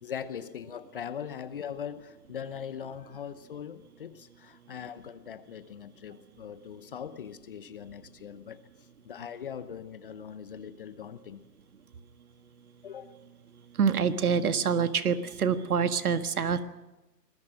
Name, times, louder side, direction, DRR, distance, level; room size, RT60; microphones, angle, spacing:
voice 1, 0.0-8.6 9.0-11.4 12.8-13.2, left 8 dB, 35° left, 0.9 m, -41 dB
voice 2, 13.8-16.6, right 6 dB, 60° right, 1.7 m, -26 dB
26.5 x 20.5 x 6.3 m
hypercardioid pair, 150°, 49 cm